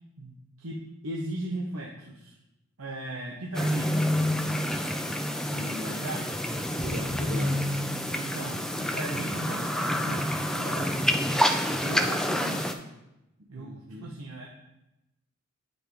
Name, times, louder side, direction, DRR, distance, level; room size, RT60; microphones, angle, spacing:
voice 1, 0.2-0.8 1.0-2.3 2.8-4.1 5.8-6.3 8.1-10.9 11.8-12.9 13.5-14.5, right 1 dB, 85° right, -2 dB, 0.8 m, -37 dB
sound 1, 3.5-12.7, left 1 dB, 5° left, 0.3 m, -28 dB
voice 2, 5.5-6.1 6.7-7.6 13.5-14.2, equal, 50° right, 0 dB, 0.6 m, -39 dB
9.5 x 4.2 x 3.4 m, 0.93 s
head